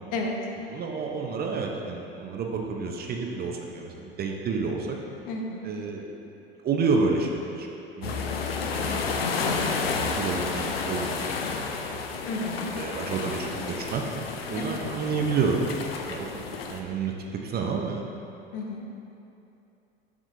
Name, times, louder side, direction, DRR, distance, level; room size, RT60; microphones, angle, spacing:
voice 1, 0.7-5.0 5.6-6.2 6.6-7.7 8.0-12.0 12.7-14.0 14.5-15.6 16.1-18.1, right 4 dB, 35° right, 1 dB, 0.7 m, -30 dB
voice 2, 5.3-5.6 12.2-12.7 14.6-14.8 18.5-18.8, left 2 dB, 55° left, 0 dB, 0.9 m, -32 dB
sound 1, 8.0-16.8, left 4 dB, 80° left, 0.5 m, -31 dB
7.2 x 5.0 x 2.7 m, 2.8 s
figure-of-eight pair, 70°, 29 cm